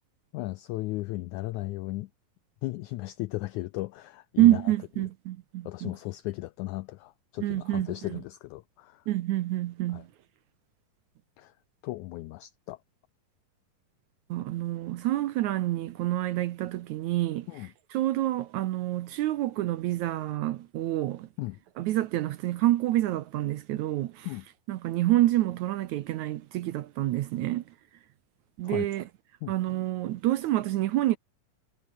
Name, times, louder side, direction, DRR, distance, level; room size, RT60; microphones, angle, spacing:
voice 1, 0.3-2.1 2.6-4.6 5.0-5.1 5.7-9.0 9.9-10.0 11.4-11.5 11.8-12.8 17.5-17.7 21.4-21.6 24.3-24.5 28.6-28.9 29.4-29.5, left 19 dB, 90° left, 1.7 m, -36 dB
voice 2, 4.4-5.9 7.4-8.2 9.1-10.1 14.3-17.5 17.9-21.3 21.8-24.3 24.7-27.6 28.6-29.0 29.5-31.2, right 15 dB, 70° right, 1.8 m, -27 dB
omnidirectional pair, 4.1 m